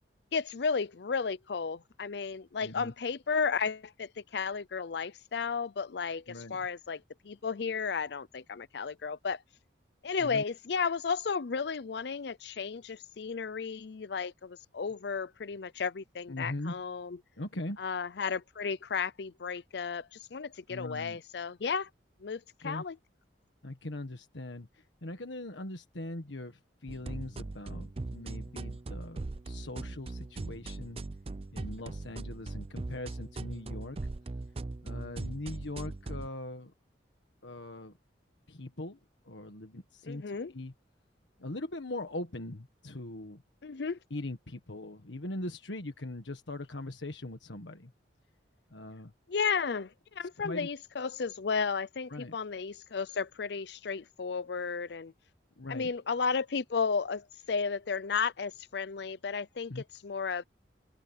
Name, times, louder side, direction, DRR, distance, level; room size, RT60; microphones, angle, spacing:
voice 1, 0.3-9.4 10.0-17.2 17.8-21.9 22.2-23.0 40.1-40.5 43.6-44.0 49.3-55.1 55.7-60.4, left 5 dB, 65° left, 0.5 m, -33 dB
voice 2, 2.6-2.9 6.3-6.7 10.2-10.4 16.3-16.8 17.4-17.8 20.7-21.2 22.6-22.8 23.6-31.0 31.5-34.0 34.8-36.7 37.4-38.0 38.5-39.0 39.2-40.7 41.4-43.4 44.1-47.9 48.7-49.1 50.4-50.7 52.1-52.3 55.6-55.9 59.7-59.8, left 1 dB, 85° left, 1.6 m, -41 dB
sound 1, 26.9-36.3, right 2 dB, 30° right, 0.5 m, -40 dB
head